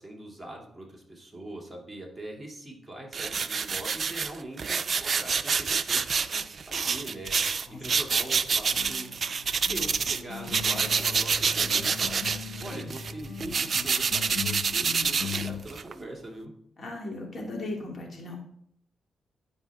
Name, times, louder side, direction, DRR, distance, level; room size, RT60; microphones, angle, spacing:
voice 1, 0.0-7.3 7.7-9.1 9.6-16.5, right 1 dB, 10° right, -1 dB, 2.6 m, -42 dB
sound 1, 3.1-10.2 10.5-15.9, right 5 dB, 50° right, 0.4 m, -27 dB
sound 2, 8.7-15.6, left 7 dB, 80° left, 1.4 m, -39 dB
voice 2, 16.8-18.4, left 2 dB, 50° left, 0 dB, 2.5 m, -37 dB
11.5 x 5.0 x 3.5 m, 0.69 s
cardioid pair, 75°, 0 cm